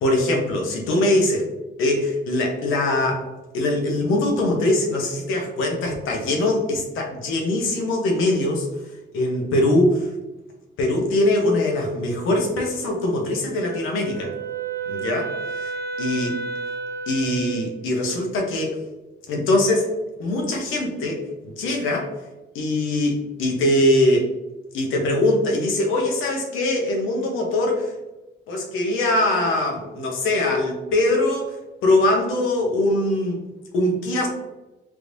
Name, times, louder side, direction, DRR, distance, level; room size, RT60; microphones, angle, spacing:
voice 1, 0.0-1.5 1.8-8.7 9.1-10.1 10.8-14.3 14.9-15.7 16.0-16.3 17.1-18.8 19.3-19.9 20.2-22.1 22.5-24.3 24.7-27.9 28.5-31.6 31.8-33.4 33.7-34.3, left 1 dB, 85° left, 1 dB, 0.9 m, -22 dB
Wind instrument woodwind instrument, 13.7-17.7, right 4 dB, 15° left, 0.7 m, -31 dB
3.5 x 3.0 x 2.6 m, 1.1 s
cardioid pair, 90°, 20 cm